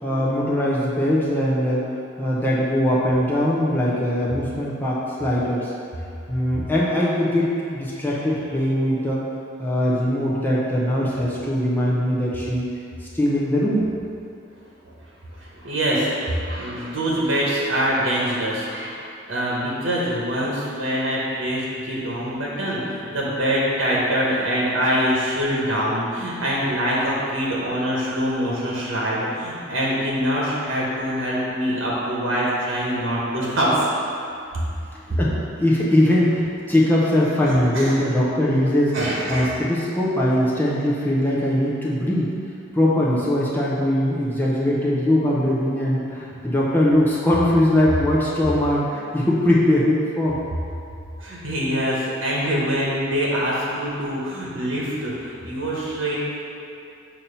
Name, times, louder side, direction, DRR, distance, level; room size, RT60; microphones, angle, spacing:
voice 1, 0.0-1.9 2.2-5.7 6.3-9.2 9.6-12.7 13.0-13.9 35.1-39.0 39.3-42.3 42.7-50.4, left 1 dB, 10° left, -6 dB, 0.7 m, -21 dB
voice 2, 15.3-19.0 19.3-33.9 37.5-38.0 38.9-39.5 51.2-56.2, equal, 80° right, -5 dB, 1.2 m, -24 dB
6.9 x 2.9 x 5.5 m, 2.5 s
head